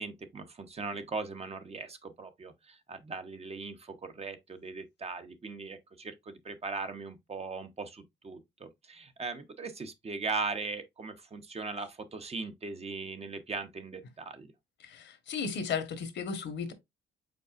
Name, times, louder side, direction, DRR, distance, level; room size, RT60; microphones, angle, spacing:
voice 1, 0.0-14.5, right 4 dB, 30° right, 0.8 m, -39 dB
voice 2, 14.8-16.7, left 6 dB, 65° left, 1.2 m, -35 dB
5.2 x 4.1 x 2.4 m
cardioid pair, 90°, 20 cm